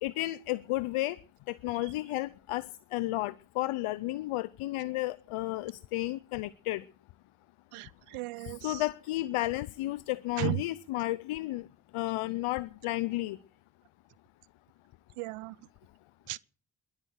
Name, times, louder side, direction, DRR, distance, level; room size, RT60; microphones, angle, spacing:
voice 1, 0.0-1.2 1.5-2.7 2.9-6.8 8.6-11.6 11.9-13.4, left 17 dB, 80° left, 0.6 m, -32 dB
voice 2, 7.7-8.8 10.4-10.6 15.2-15.6 16.3-16.4, right 19 dB, 90° right, 0.6 m, -35 dB
21.5 x 8.9 x 6.5 m
supercardioid pair, 40°, 50 cm